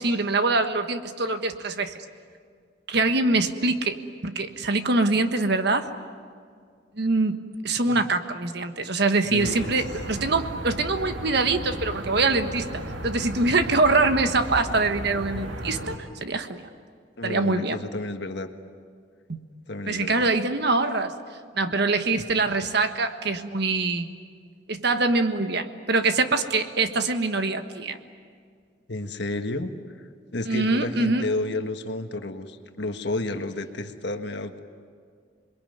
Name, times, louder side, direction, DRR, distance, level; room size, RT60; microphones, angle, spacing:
voice 1, 0.0-2.0 2.9-4.0 4.2-5.9 7.0-7.4 7.6-16.6 17.2-17.8 19.3-19.4 19.9-21.1 21.5-24.1 24.7-28.0 30.4-31.2, right 3 dB, 60° right, 8 dB, 1.4 m, -24 dB
voice 2, 9.3-9.7 17.2-18.5 19.7-20.3 28.9-29.7 30.0-34.6, left 2 dB, 60° left, 7 dB, 1.5 m, -31 dB
sound 1, 9.4-16.0, right 1 dB, 75° right, 2.5 m, -35 dB
27.5 x 22.0 x 9.4 m, 2.1 s
head